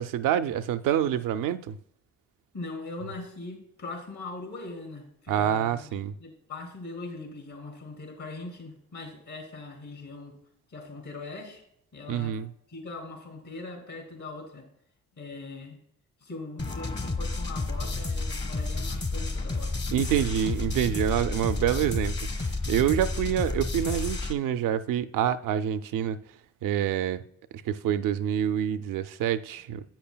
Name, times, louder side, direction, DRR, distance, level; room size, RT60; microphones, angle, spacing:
voice 1, 0.0-1.8 5.3-6.1 12.1-12.5 19.9-26.2 26.6-27.2 27.7-29.8, right 10 dB, 85° right, 0.5 m, -27 dB
voice 2, 2.5-10.4 10.7-11.6 11.9-12.4 12.7-14.7 15.2-15.8 16.2-19.7 20.1-20.3, left 3 dB, 65° left, 3.3 m, -41 dB
sound 1, 16.6-24.3, left 3 dB, 35° left, 1.1 m, -31 dB
10.5 x 8.5 x 2.2 m
supercardioid pair, 50°, 32 cm